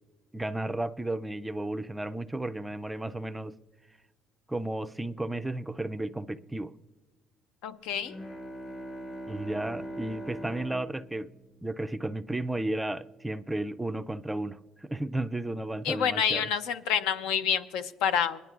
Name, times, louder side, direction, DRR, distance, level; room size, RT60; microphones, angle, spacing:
voice 1, 0.3-3.6 4.5-6.7 9.3-11.3 11.6-16.5, right 1 dB, 10° right, 0.3 m, -33 dB
voice 2, 7.6-8.2 15.8-18.4, left 8 dB, 85° left, 0.6 m, -28 dB
Bowed string instrument, 8.0-12.5, right 1 dB, 30° left, 0.7 m, -42 dB
22.5 x 10.5 x 2.4 m
cardioid pair, 125°, 0 cm